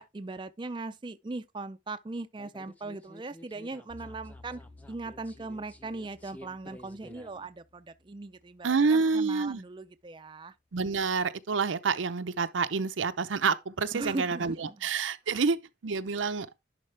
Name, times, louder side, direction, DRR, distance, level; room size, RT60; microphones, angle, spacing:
voice 1, 0.0-4.6 4.9-10.5 13.9-14.9 15.3-15.4, right 3 dB, 25° right, 0.4 m, -39 dB
sound 1, 2.4-7.5, left 1 dB, 10° left, 0.7 m, -52 dB
sound 2, 3.9-9.0, left 2 dB, 75° left, 4.3 m, -55 dB
voice 2, 8.6-9.6 10.7-16.5, right 4 dB, 90° right, 0.6 m, -28 dB
11.0 x 4.2 x 3.3 m
head